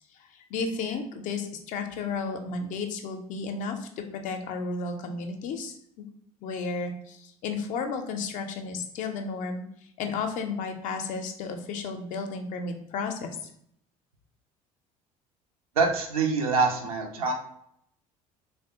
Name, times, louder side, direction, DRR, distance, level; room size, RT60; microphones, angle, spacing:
voice 1, 0.3-5.8 6.4-9.7 10.0-13.3, left 4 dB, 45° left, 5 dB, 0.5 m, -33 dB
voice 2, 15.8-17.3, right 4 dB, 70° right, 1 dB, 0.5 m, -25 dB
3.4 x 2.0 x 2.7 m, 0.70 s
figure-of-eight pair, 60°, 19 cm